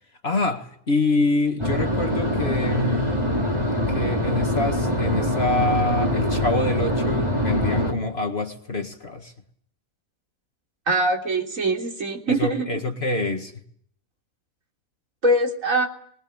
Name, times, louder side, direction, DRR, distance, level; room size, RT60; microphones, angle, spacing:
voice 1, 0.2-3.1 3.9-9.3 12.3-13.5, left 2 dB, 40° left, 4 dB, 2.0 m, -26 dB
sound 1, 1.6-7.9, equal, 15° right, 4.1 m, -23 dB
voice 2, 10.9-12.7 15.2-15.9, right 1 dB, 55° right, 1 dB, 3.9 m, -22 dB
24.5 x 21.0 x 8.9 m, 0.66 s
omnidirectional pair, 1.7 m